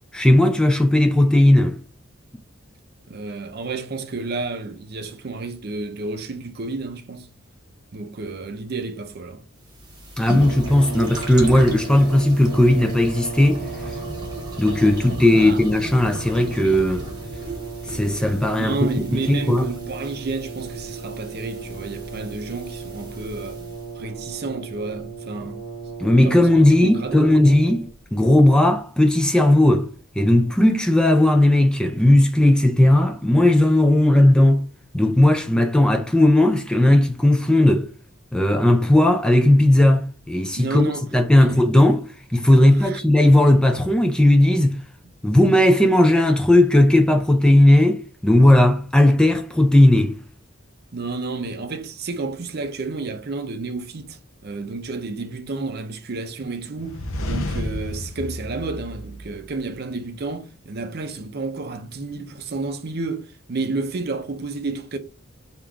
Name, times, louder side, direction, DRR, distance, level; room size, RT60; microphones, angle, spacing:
voice 1, 0.1-1.8 10.2-13.6 14.6-17.1 17.9-19.7 26.0-34.6 34.9-37.9 38.3-44.8 45.2-50.2, left 1 dB, 5° left, 0.3 m, -16 dB
voice 2, 3.1-7.3 7.9-9.4 15.4-15.6 18.5-23.6 23.9-25.6 26.2-27.4 40.5-41.1 41.4-41.6 42.8-43.0 50.9-65.0, right 3 dB, 50° right, 0.5 m, -31 dB
sound 1, 9.6-23.9, equal, 20° right, 0.9 m, -36 dB
Brass instrument, 10.3-28.1, right 4 dB, 55° left, 1.4 m, -36 dB
sound 2, 56.8-59.7, left 1 dB, 90° left, 0.8 m, -31 dB
3.5 x 2.9 x 4.7 m
head